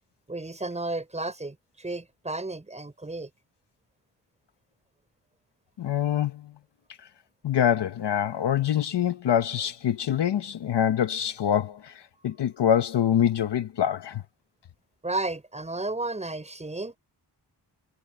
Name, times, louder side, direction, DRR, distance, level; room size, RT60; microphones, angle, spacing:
voice 1, 0.3-3.3 15.0-16.9, right 2 dB, 15° right, 5.9 m, -33 dB
voice 2, 5.8-6.5 7.4-14.2, left 9 dB, 75° left, 1.0 m, -25 dB
wide cardioid pair, 180°, 41 cm